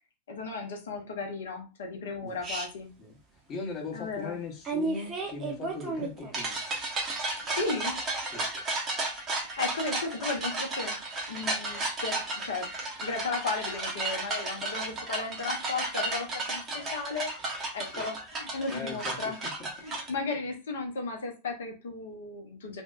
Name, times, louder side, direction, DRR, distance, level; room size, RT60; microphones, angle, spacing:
voice 1, 0.3-2.9 3.9-4.4 7.5-8.0 9.4-11.0 11.3-12.7 13.0-17.3 17.7-19.4 19.8-22.8, left 3 dB, 60° left, 3 dB, 0.7 m, -35 dB
sound 1, 2.4-2.7 4.6-20.1, right 2 dB, 25° right, 0.7 m, -33 dB
voice 2, 3.5-6.6 8.3-8.6 17.9-18.0 18.7-19.7, left 3 dB, 30° left, 1 dB, 0.8 m, -39 dB
2.6 x 2.1 x 2.3 m, 0.30 s
figure-of-eight pair, 90°, 0 cm